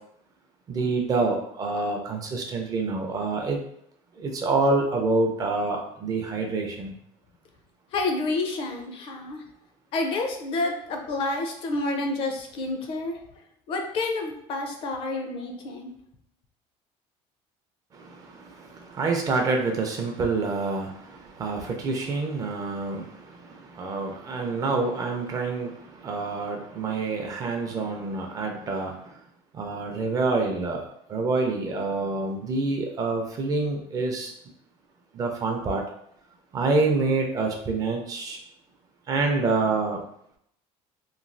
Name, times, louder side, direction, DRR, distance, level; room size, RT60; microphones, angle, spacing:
voice 1, 0.7-3.6 4.1-7.0 17.9-29.2 29.5-34.3 35.1-35.8 36.5-38.4 39.1-40.0, right 3 dB, 30° right, 2 dB, 0.4 m, -27 dB
voice 2, 7.9-9.4 9.9-13.2 13.7-15.9, left 2 dB, 50° left, 3 dB, 0.5 m, -29 dB
3.0 x 2.3 x 2.6 m, 0.71 s
cardioid pair, 160°, 12 cm